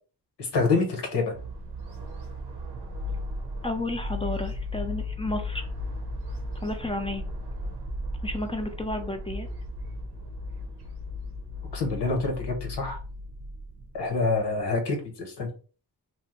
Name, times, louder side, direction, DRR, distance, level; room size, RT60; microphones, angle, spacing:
voice 1, 0.4-1.3 11.7-13.0 13.9-15.5, left 3 dB, 90° left, 2 dB, 0.9 m, -26 dB
sound 1, 1.3-14.5, left 1 dB, 75° right, 0.8 m, -36 dB
voice 2, 3.6-5.7 6.6-7.2 8.2-9.5, left 1 dB, 15° left, 5 dB, 0.5 m, -32 dB
3.0 x 2.1 x 2.9 m, 0.37 s
cardioid pair, 60°, 41 cm